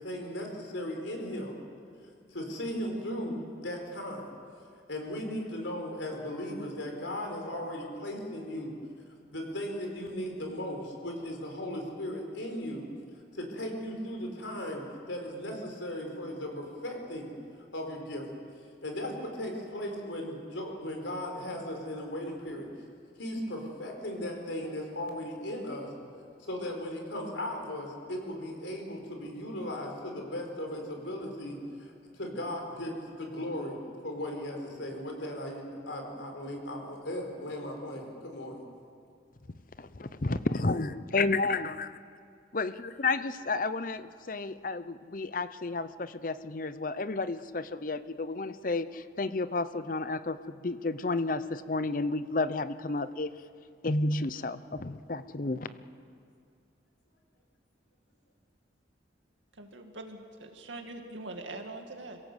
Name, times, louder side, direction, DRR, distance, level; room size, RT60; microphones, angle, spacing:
voice 1, 0.0-1.5 2.3-4.3 4.9-8.8 9.3-12.9 13.3-17.3 17.7-18.4 18.8-22.7 23.2-25.9 26.4-38.6, left 1 dB, 90° left, 2 dB, 4.4 m, -37 dB
voice 2, 39.8-41.9 42.5-53.3 53.8-55.7, left 3 dB, 45° left, 13 dB, 0.7 m, -31 dB
voice 3, 59.6-62.2, right 2 dB, 85° right, 4 dB, 2.3 m, -43 dB
26.0 x 17.0 x 8.0 m, 2.3 s
head